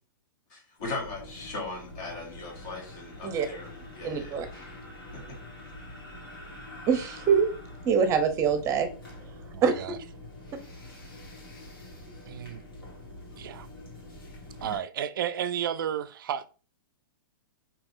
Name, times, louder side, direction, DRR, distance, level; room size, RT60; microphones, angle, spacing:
voice 1, 0.5-4.4 5.1-5.4, left 3 dB, 45° left, 1.5 m, -38 dB
sound 1, 0.8-14.8, left 1 dB, 80° left, 1.6 m, -45 dB
voice 2, 4.0-4.5 6.8-7.5 7.8-8.9 9.6-9.8, right 6 dB, 25° right, 0.6 m, -24 dB
voice 3, 9.5-10.0 12.3-12.6 13.4-13.7 14.6-16.5, right 9 dB, 75° right, 0.4 m, -32 dB
3.4 x 2.7 x 2.6 m
hypercardioid pair, 130°, 11 cm